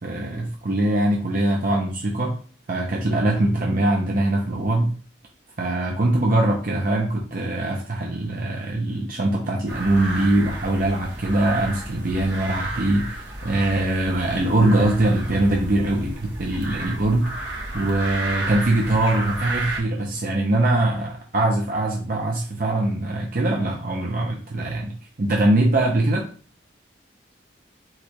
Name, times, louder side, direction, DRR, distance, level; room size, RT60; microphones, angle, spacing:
voice 1, 0.0-2.3 2.7-4.9 5.6-17.5 17.7-24.9 25.2-26.3, right 1 dB, 45° right, 0 dB, 0.6 m, -22 dB
sound 1, 9.7-19.8, right 2 dB, 65° right, 1.2 m, -32 dB
4.8 x 2.3 x 4.5 m, 0.42 s
head